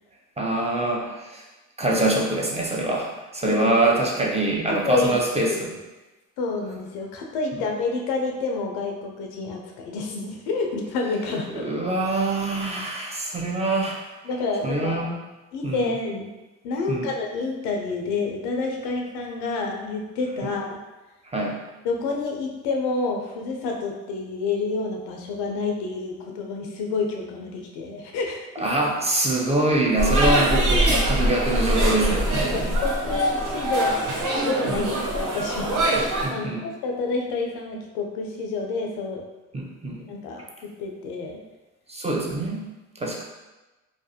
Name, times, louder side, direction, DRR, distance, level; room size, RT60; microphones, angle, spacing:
voice 1, 0.4-1.4 1.8-5.7 7.5-7.6 11.5-14.0 14.6-15.2 15.6-15.9 16.9-17.1 20.4-20.5 21.2-21.6 28.6-32.8 34.7-34.9 36.2-36.7 39.5-40.0 41.9-43.2, right 2 dB, 15° right, -2 dB, 0.5 m, -25 dB
voice 2, 3.5-4.0 4.8-5.1 5.5-5.7 6.4-11.7 14.2-15.0 15.5-16.3 16.6-20.8 21.8-28.7 32.5-34.0 34.3-39.2 40.1-41.4, left 3 dB, 90° left, 1 dB, 0.5 m, -29 dB
sound 1, 30.0-36.3, right 1 dB, 55° right, 0.8 m, -23 dB
2.4 x 2.1 x 2.7 m, 1.1 s
supercardioid pair, 55°, 37 cm